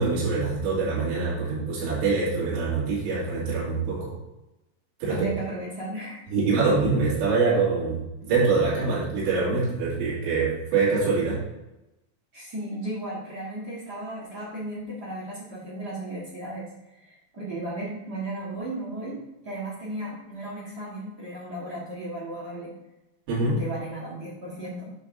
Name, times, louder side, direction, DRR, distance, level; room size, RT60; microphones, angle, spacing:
voice 1, 0.0-4.1 5.0-5.3 6.3-11.4 23.3-23.6, right 4 dB, 85° right, -8 dB, 4.8 m, -24 dB
voice 2, 5.1-6.6 12.3-16.7 16.9-19.2 19.4-22.7 23.6-24.9, right 1 dB, 50° right, -6 dB, 1.2 m, -35 dB
8.9 x 4.0 x 6.3 m, 0.95 s
omnidirectional pair, 5.0 m